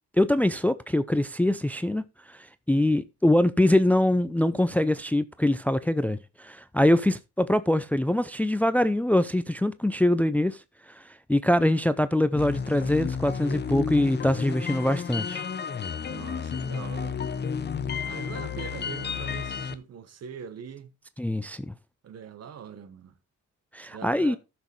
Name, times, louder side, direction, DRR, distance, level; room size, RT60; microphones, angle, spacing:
voice 1, 0.2-10.6 11.0-11.1 11.3-15.4 21.2-21.7 23.7-24.4, left 1 dB, 5° left, 0.4 m, -24 dB
sound 1, 12.4-19.7, left 6 dB, 35° left, 0.7 m, -32 dB
voice 2, 16.0-17.5 18.0-21.0 22.0-23.1 23.9-24.4, right 7 dB, 55° right, 1.1 m, -42 dB
14.5 x 6.2 x 3.2 m
cardioid pair, 90°, 30 cm